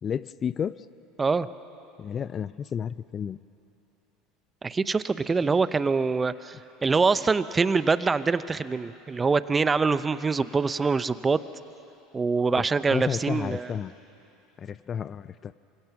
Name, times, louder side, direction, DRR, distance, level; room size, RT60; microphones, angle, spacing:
voice 1, 0.0-0.7 2.0-3.4 12.6-12.7 12.9-13.9 14.6-15.5, left 8 dB, 35° left, 17 dB, 0.5 m, -31 dB
voice 2, 4.6-11.4 12.1-13.7, right 4 dB, 20° right, 15 dB, 0.8 m, -24 dB
27.5 x 25.5 x 6.0 m, 2.9 s
hypercardioid pair, 75°, 0 cm